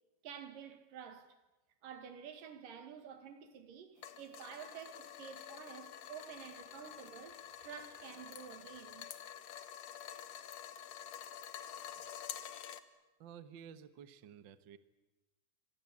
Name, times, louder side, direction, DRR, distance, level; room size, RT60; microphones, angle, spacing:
voice 1, 0.2-1.4 1.8-9.1, right 8 dB, 85° right, 3.6 m, -50 dB
sound 1, 4.0-12.8, left 10 dB, 60° left, 2.1 m, -49 dB
voice 2, 13.2-14.8, right 8 dB, 60° right, 1.2 m, -53 dB
28.0 x 24.5 x 8.5 m
omnidirectional pair, 3.8 m